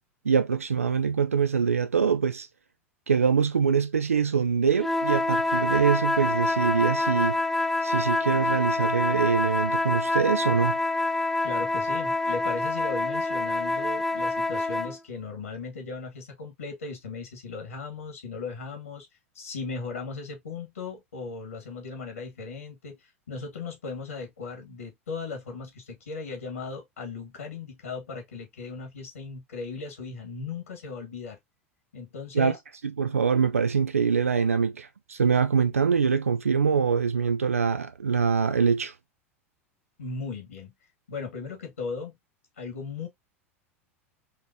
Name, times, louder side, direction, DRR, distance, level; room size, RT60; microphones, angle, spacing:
voice 1, 0.2-2.5 3.1-7.4 7.8-10.8 32.3-32.6 32.8-38.9, right 6 dB, 85° right, 0.3 m, -24 dB
sound 1, 4.8-15.0, left 2 dB, ahead, 0.4 m, -26 dB
voice 2, 11.4-19.1 19.3-31.4 31.9-32.6 40.0-40.7 41.1-42.1 42.6-43.1, left 4 dB, 80° left, 1.6 m, -37 dB
5.0 x 2.7 x 2.7 m
figure-of-eight pair, 85°, 8 cm